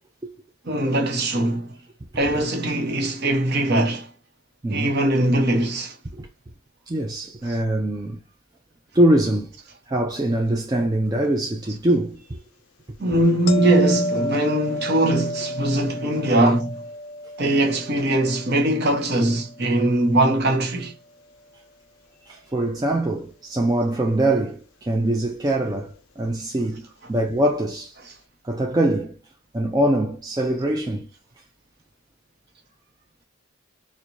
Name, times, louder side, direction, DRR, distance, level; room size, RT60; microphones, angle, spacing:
voice 1, 0.7-1.7 2.2-4.1 4.7-6.0 7.5-7.6 13.0-16.7 17.4-20.9, right 1 dB, 50° right, 0.8 m, -21 dB
voice 2, 4.6-5.0 6.1-6.3 6.9-8.2 8.9-9.5 9.9-12.4 16.4-16.6 22.3-28.0 28.4-29.2 29.5-31.1, right 1 dB, 15° right, 0.3 m, -23 dB
sound 1, 13.5-20.5 25.7-25.9, left 1 dB, 70° left, 0.5 m, -32 dB
4.5 x 2.1 x 2.6 m
head